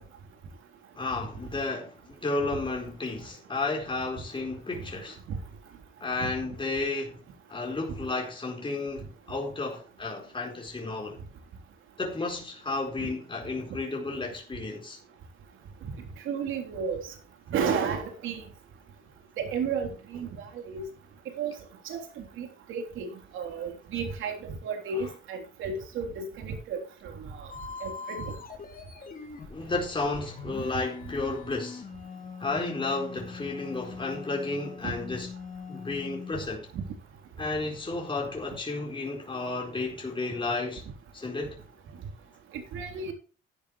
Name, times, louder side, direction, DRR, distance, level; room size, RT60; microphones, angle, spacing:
voice 1, 0.9-5.2 6.0-7.2 7.5-11.2 12.0-15.0 29.5-31.8 32.4-35.3 35.7-36.7 37.4-40.8 41.1-41.6, left 3 dB, 25° left, 4.3 m, -32 dB
voice 2, 16.3-17.0 17.5-18.4 19.4-20.8 21.4-21.5 21.9-27.1 27.4-27.5 27.8-28.3 34.8-34.9 42.5-43.1, right 5 dB, 85° right, 3.6 m, -33 dB
sound 1, 27.5-36.3, left 5 dB, 45° left, 3.8 m, -42 dB
14.0 x 10.5 x 3.2 m
cardioid pair, 90°, 20 cm